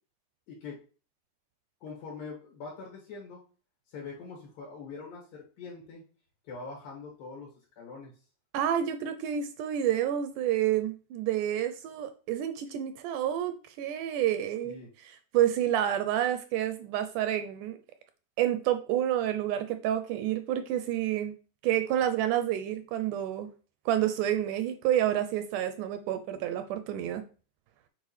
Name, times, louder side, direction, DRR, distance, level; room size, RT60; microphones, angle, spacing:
voice 1, 0.5-0.8 1.8-3.4 3.9-6.0 6.4-7.5 7.8-8.1 14.6-14.9, left 4 dB, 80° left, -3 dB, 3.7 m, -43 dB
voice 2, 8.5-14.8 15.3-17.8 18.4-21.3 21.6-23.5 23.9-27.2, right 11 dB, 80° right, 9 dB, 1.9 m, -29 dB
8.1 x 4.4 x 3.2 m, 0.37 s
omnidirectional pair, 4.0 m